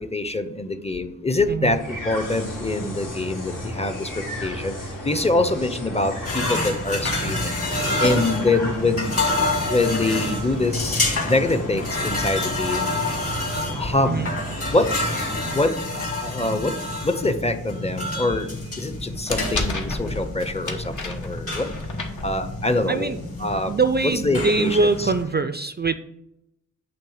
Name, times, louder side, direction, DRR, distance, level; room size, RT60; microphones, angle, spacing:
voice 1, 0.0-4.8 5.0-9.2 9.6-12.9 13.7-14.2 14.7-14.9 15.5-16.7 17.0-18.5 18.8-21.7 22.2-23.1 23.4-23.7 24.0-25.1, left 2 dB, 20° left, 10 dB, 0.6 m, -24 dB
sound 1, 1.6-15.9, equal, 90° left, 2.1 m, -33 dB
sound 2, 6.2-25.2, left 2 dB, 45° left, 2.0 m, -28 dB
sound 3, 18.9-22.9, left 3 dB, 70° left, 1.2 m, -32 dB
voice 2, 23.7-25.9, right 3 dB, 35° right, 10 dB, 0.4 m, -23 dB
8.7 x 3.3 x 6.4 m, 0.83 s
wide cardioid pair, 90°, 31 cm